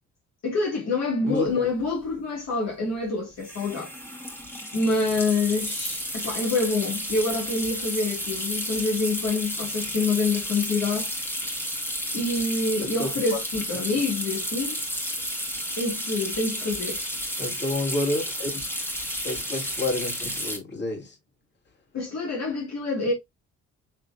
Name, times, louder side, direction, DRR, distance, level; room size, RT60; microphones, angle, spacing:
voice 1, 0.4-4.0 4.7-11.1 12.1-14.8 15.8-17.0 21.9-23.1, left 3 dB, 60° left, 2.2 m, -26 dB
voice 2, 1.2-1.7 12.8-13.4 13.9-14.0 17.4-18.6 19.2-21.2, left 2 dB, 35° left, 2.6 m, -30 dB
sound 1, 1.5-1.6 1.8-2.1 3.4-20.6, equal, 5° left, 1.8 m, -32 dB
6.5 x 3.2 x 2.5 m
cardioid pair, 90°, 30 cm